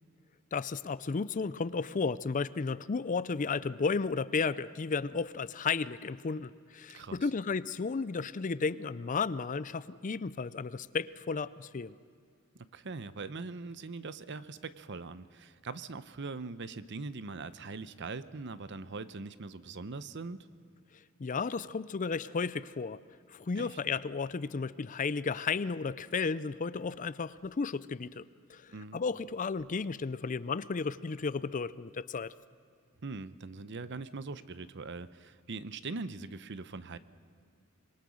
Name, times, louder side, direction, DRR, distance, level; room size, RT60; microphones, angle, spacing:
voice 1, 0.5-12.0 21.2-23.0 23.3-28.2 28.5-32.3, left 4 dB, 35° left, 17 dB, 0.5 m, -33 dB
voice 2, 12.6-20.4 23.5-23.8 28.7-29.0 33.0-37.0, right 3 dB, 55° right, 14 dB, 0.8 m, -41 dB
25.5 x 22.0 x 6.3 m, 2.2 s
head